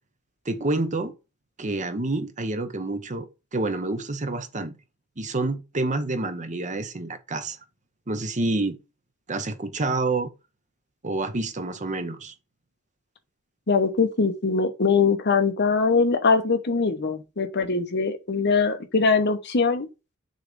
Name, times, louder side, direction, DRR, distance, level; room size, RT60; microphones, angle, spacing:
voice 1, 0.4-1.1 1.6-4.7 5.2-7.6 8.1-8.8 9.3-10.3 11.0-12.3, right 2 dB, 35° right, 0.9 m, -28 dB
voice 2, 13.7-19.9, left 4 dB, 55° left, 0.9 m, -22 dB
6.4 x 3.2 x 5.0 m
head